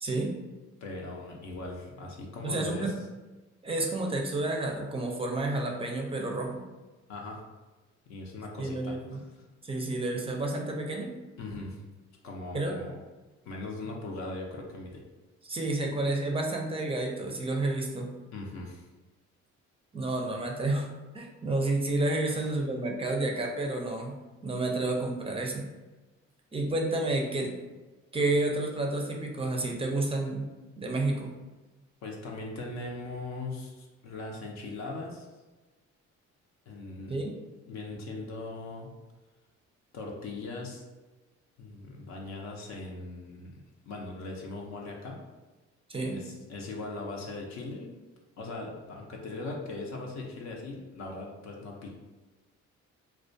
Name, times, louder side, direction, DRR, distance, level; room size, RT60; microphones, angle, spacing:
voice 1, 0.0-0.3 2.4-2.9 3.6-6.6 8.6-9.2 9.6-11.1 12.5-12.8 15.4-18.1 19.9-20.9 21.1-24.2 24.4-25.7 26.5-27.5 28.1-30.5 30.8-31.3 37.1-37.3 45.9-46.2, right 2 dB, 20° right, 1 dB, 0.4 m, -30 dB
voice 2, 0.8-2.9 7.1-7.4 8.1-9.5 11.4-11.8 12.2-13.0 13.4-15.0 18.3-18.9 22.3-22.5 32.0-35.3 36.7-37.2 37.7-38.9 39.9-40.8 41.6-45.2 46.1-47.9 48.4-51.9, left 2 dB, 65° left, 0 dB, 0.5 m, -39 dB
2.3 x 2.2 x 2.5 m, 1.2 s
cardioid pair, 90°, 30 cm